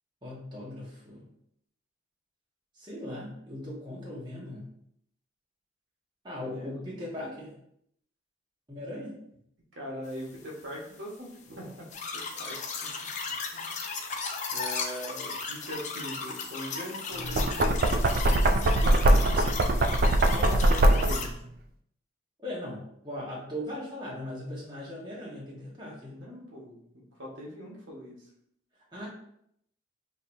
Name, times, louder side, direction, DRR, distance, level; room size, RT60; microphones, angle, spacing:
voice 1, 0.2-1.3 2.7-4.7 6.2-7.5 8.7-9.2 22.4-26.2 28.9-29.1, left 1 dB, 25° right, -6 dB, 1.1 m, -39 dB
voice 2, 6.5-6.8 9.7-11.7 12.1-12.7 13.5-13.7 14.5-18.0 18.3-19.2 20.3-21.3 25.5-25.6 26.1-26.8 27.2-28.2, equal, 70° right, -3 dB, 1.2 m, -41 dB
sound 1, 11.9-21.3, left 4 dB, 35° left, 0.5 m, -36 dB
Knock, 17.2-21.3, right 1 dB, 45° right, 0.3 m, -22 dB
6.4 x 2.7 x 2.6 m, 0.72 s
head